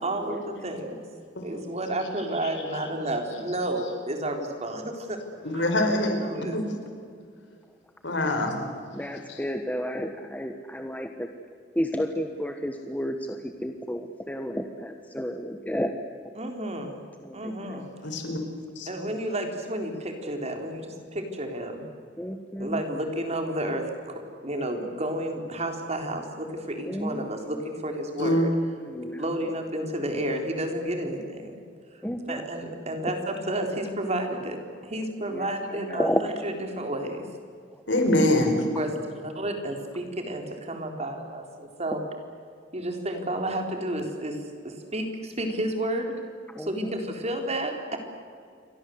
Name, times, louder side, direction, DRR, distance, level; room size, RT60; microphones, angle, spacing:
voice 1, 0.0-1.1 1.4-5.7 6.1-6.6 16.4-17.0 17.3-17.9 18.9-21.9 22.6-28.5 29.2-31.5 32.3-36.1 36.4-37.3 38.8-42.0 42.7-46.2 46.6-48.0, right 1 dB, 35° right, 4 dB, 4.0 m, -31 dB
voice 2, 5.4-6.2 6.5-6.7 8.0-8.7 18.0-18.4 18.8-18.9 28.2-28.4 37.9-38.6, left 1 dB, 80° left, 5 dB, 4.9 m, -24 dB
voice 3, 8.9-11.3 11.7-15.9 17.2-17.8 19.0-19.1 22.2-22.8 26.8-27.3 27.5-27.6 28.8-29.2 32.0-32.4 35.3-35.5 35.9-36.2 46.5-46.9, equal, 10° left, 5 dB, 1.3 m, -31 dB
28.5 x 24.0 x 8.0 m, 2.2 s
head